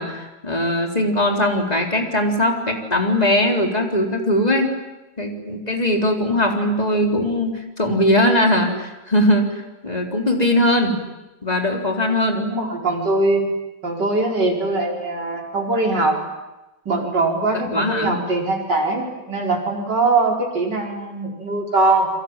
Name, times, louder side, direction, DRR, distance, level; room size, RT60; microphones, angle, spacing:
voice 1, 0.0-4.7 5.2-11.0 11.4-12.5 17.6-18.2, left 1 dB, 20° left, 2 dB, 4.0 m, -20 dB
voice 2, 12.3-13.4 13.8-16.2 16.9-22.1, right 2 dB, 75° right, 0 dB, 5.6 m, -21 dB
28.5 x 23.0 x 9.1 m, 1.0 s
omnidirectional pair, 1.9 m